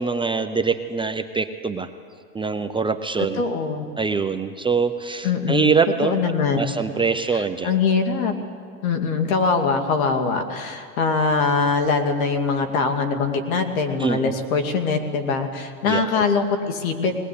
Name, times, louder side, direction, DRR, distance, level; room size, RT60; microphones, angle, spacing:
voice 1, 0.0-1.9 2.3-3.4 4.0-6.1 6.5-7.7 14.0-14.3 15.9-16.2, right 5 dB, 10° right, 8 dB, 0.6 m, -23 dB
voice 2, 3.2-3.9 5.2-5.7 6.0-6.7 7.3-8.4 8.8-17.1, left 4 dB, 70° left, 6 dB, 2.6 m, -22 dB
20.5 x 19.5 x 8.5 m, 2.2 s
hypercardioid pair, 110°, 43 cm